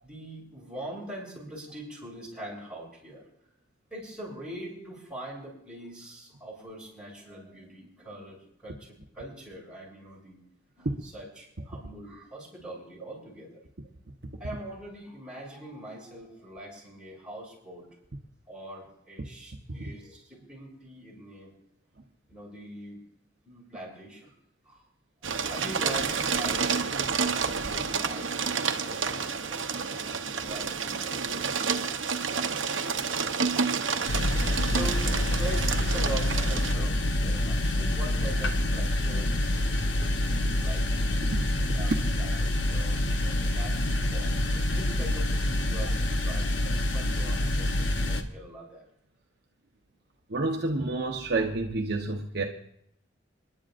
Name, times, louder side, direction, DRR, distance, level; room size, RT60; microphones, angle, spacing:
voice 1, 0.0-3.2 3.9-10.4 10.8-13.6 14.4-17.9 18.5-21.5 22.3-23.0 23.4-24.3 24.6-24.8 25.2-31.8 32.2-32.4 32.9-33.3 34.6-41.2 41.7-41.9 42.2-48.8, right 1 dB, 5° right, -5 dB, 6.8 m, -43 dB
sound 1, 25.2-36.7, right 5 dB, 85° right, 0.9 m, -29 dB
sound 2, 34.1-48.2, left 1 dB, 70° left, 1.0 m, -27 dB
voice 2, 50.3-52.4, right 2 dB, 60° right, 1 dB, 1.0 m, -29 dB
28.0 x 11.0 x 2.6 m, 0.72 s
head